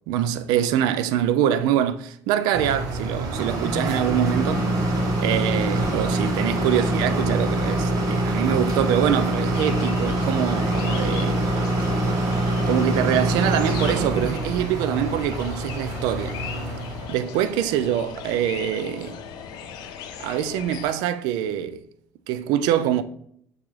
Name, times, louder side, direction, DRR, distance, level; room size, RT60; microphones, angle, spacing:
voice 1, 0.1-11.4 12.7-16.4 17.1-19.2 20.2-21.8 22.3-23.0, right 10 dB, 75° right, 0.3 m, -24 dB
sound 1, 2.5-17.2, right 1 dB, 60° right, 1.0 m, -24 dB
sound 2, 9.5-20.9, left 7 dB, 70° left, 0.6 m, -38 dB
6.8 x 2.4 x 3.1 m
hypercardioid pair, 65°, 7 cm